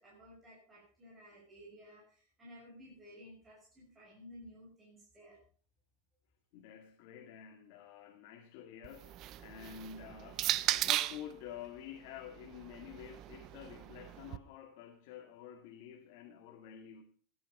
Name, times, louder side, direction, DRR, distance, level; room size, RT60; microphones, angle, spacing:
voice 1, 0.0-5.4, equal, 10° right, 6.5 m, -55 dB
voice 2, 6.5-10.5 10.8-17.0, left 9 dB, 50° left, 2.0 m, -49 dB
sound 1, 8.8-11.3 12.3-14.4, right 14 dB, 35° right, 0.6 m, -36 dB
16.5 x 11.0 x 5.4 m
supercardioid pair, 170°, 0 cm